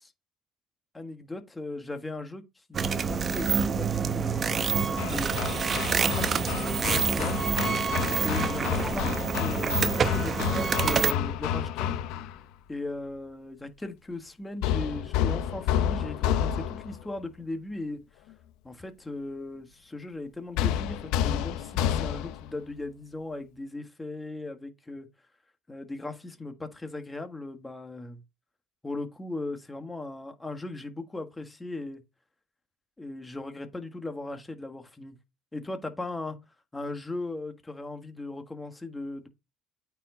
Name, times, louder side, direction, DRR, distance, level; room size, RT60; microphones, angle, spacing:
voice 1, 0.9-5.7 6.0-7.5 8.2-11.9 12.7-18.0 18.6-25.1 25.7-28.2 28.8-32.0 33.0-35.1 35.5-36.4 36.7-39.3, left 2 dB, 15° left, 1.5 m, -38 dB
sound 1, 2.7-11.1, right 6 dB, 35° right, 0.7 m, -27 dB
Hammer, 5.0-12.4 14.6-17.0 20.6-22.5, left 10 dB, 75° left, 0.7 m, -30 dB
8.8 x 4.8 x 3.9 m
supercardioid pair, 100°, 0 cm